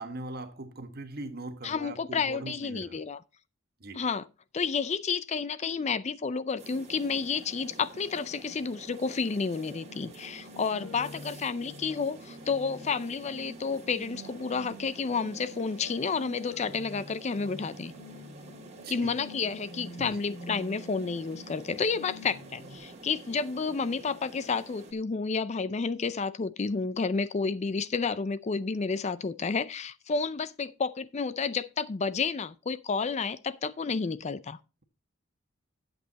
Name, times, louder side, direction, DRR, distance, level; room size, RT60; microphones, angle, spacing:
voice 1, 0.0-3.0 3.8-4.0 18.8-19.1 20.0-20.2, right 2 dB, 50° right, 1.5 m, -40 dB
voice 2, 1.6-3.2 3.9-4.3 4.5-17.9 18.9-34.6, left 5 dB, 35° left, 0.4 m, -31 dB
sound 1, 6.6-24.9, right 2 dB, 30° right, 2.2 m, -49 dB
sound 2, 9.7-22.8, left 1 dB, 60° left, 2.8 m, -48 dB
11.0 x 7.9 x 4.0 m
head